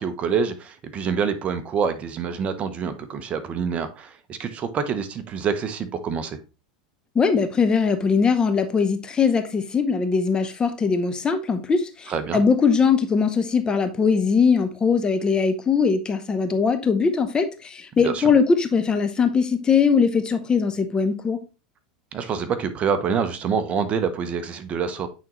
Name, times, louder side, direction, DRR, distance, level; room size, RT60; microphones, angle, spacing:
voice 1, 0.0-6.4 12.1-12.4 18.0-18.3 22.1-25.1, right 6 dB, 30° right, 0.9 m, -26 dB
voice 2, 7.1-21.4, left 5 dB, 20° left, 0.8 m, -21 dB
8.8 x 3.7 x 3.0 m
hypercardioid pair, 110°, 4 cm